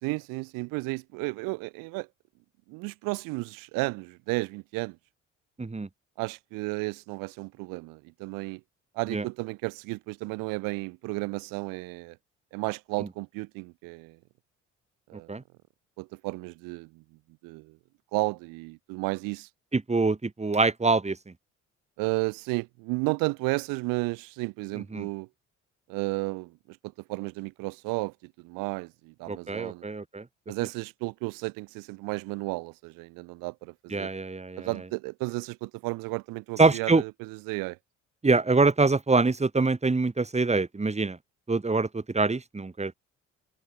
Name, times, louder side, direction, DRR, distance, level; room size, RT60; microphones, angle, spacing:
voice 1, 0.0-2.1 2.7-5.0 6.2-8.6 8.9-12.2 12.5-14.2 15.1-15.3 16.0-17.0 17.4-17.8 18.1-19.5 22.0-25.3 25.9-29.8 30.5-34.1 34.6-37.8, right 26 dB, 60° right, 3.1 m, -33 dB
voice 2, 19.7-21.2 24.9-25.1 29.3-30.2 33.9-34.7 36.6-37.0 38.2-41.2 41.5-42.9, right 3 dB, 20° right, 3.8 m, -24 dB
figure-of-eight pair, 50°, 37 cm